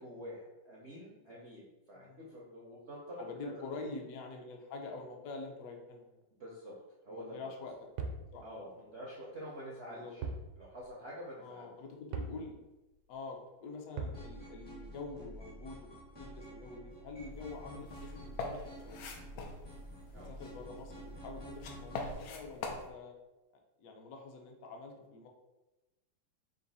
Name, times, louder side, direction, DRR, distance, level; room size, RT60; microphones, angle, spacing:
voice 1, 0.0-3.5 6.4-6.7 7.0-7.6 8.4-10.2 10.6-11.7 20.1-20.3, equal, 65° right, -5 dB, 0.6 m, -47 dB
voice 2, 1.9-2.4 3.2-6.2 7.1-8.4 8.8-8.9 9.9-10.1 11.4-12.5 13.1-15.9 16.2-19.0 19.3-19.5 20.3-23.2 23.8-25.3, left 3 dB, 65° left, 2 dB, 0.9 m, -46 dB
sound 1, 8.0-8.3 10.2-10.5 10.8-10.9 12.1-12.4 14.0-14.3, right 4 dB, 85° right, 1.4 m, -38 dB
sound 2, 14.1-22.1, right 1 dB, 30° left, 0.5 m, -49 dB
sound 3, 17.3-22.9, left 3 dB, 85° left, 1.4 m, -45 dB
3.9 x 2.6 x 4.0 m, 1.1 s
omnidirectional pair, 2.2 m